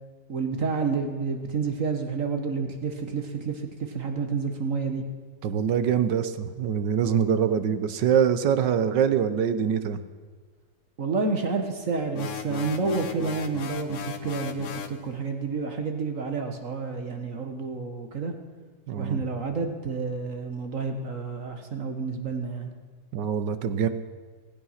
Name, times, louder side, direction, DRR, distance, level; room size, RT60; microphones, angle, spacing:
voice 1, 0.3-5.0 11.0-18.3 19.0-22.7, right 4 dB, 45° right, 5 dB, 1.6 m, -29 dB
voice 2, 5.4-10.0 18.9-19.2 23.1-23.9, right 8 dB, 65° right, 11 dB, 1.4 m, -24 dB
sound 1, 12.1-15.0, left 7 dB, 50° left, 1.0 m, -36 dB
16.0 x 15.5 x 5.7 m, 1.5 s
omnidirectional pair, 2.1 m